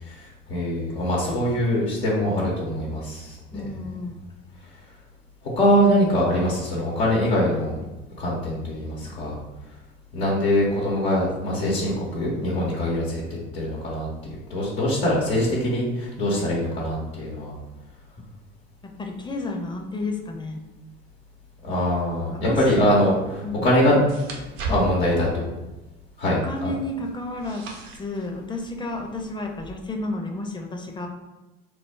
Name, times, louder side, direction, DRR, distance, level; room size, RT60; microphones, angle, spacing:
voice 1, 0.1-3.6 5.6-7.7 8.2-9.3 10.1-13.2 13.5-14.1 14.5-17.5 21.6-23.1 23.6-24.0 24.6-25.5 26.2-26.7, left 1 dB, 85° left, -5 dB, 0.8 m, -23 dB
voice 2, 3.5-4.2 11.6-12.6 16.3-16.5 18.8-20.6 22.3-23.1 23.4-23.7 26.4-27.6 27.9-31.1, left 2 dB, 15° left, 2 dB, 0.5 m, -32 dB
sound 1, 22.5-29.7, right 2 dB, 75° right, 0.7 m, -39 dB
3.2 x 2.0 x 3.2 m, 1.0 s
figure-of-eight pair, 60°, 31 cm